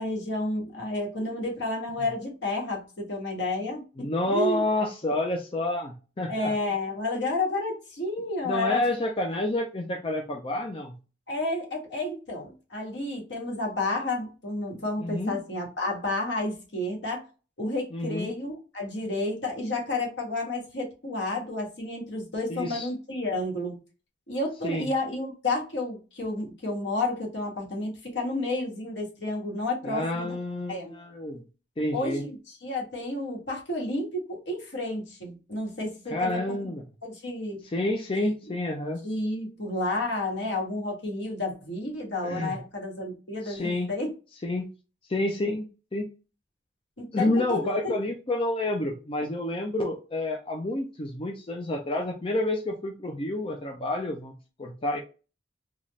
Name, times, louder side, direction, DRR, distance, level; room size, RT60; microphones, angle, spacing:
voice 1, 0.0-4.6 6.3-8.8 11.3-17.3 17.6-23.7 24.3-30.4 30.7-30.9 31.9-36.7 37.0-37.6 38.2-38.3 39.0-44.1 47.0-47.9, left 2 dB, 65° left, 1.4 m, -31 dB
voice 2, 4.0-6.5 8.4-10.9 15.0-15.4 17.9-18.3 22.5-22.9 24.6-24.9 29.8-31.4 31.8-32.2 36.1-36.8 37.6-39.0 42.2-42.6 43.4-43.9 44.4-44.7 45.1-45.7 45.9-46.1 47.1-54.3 54.6-55.0, left 2 dB, 30° left, 0.5 m, -29 dB
4.0 x 2.4 x 3.1 m
head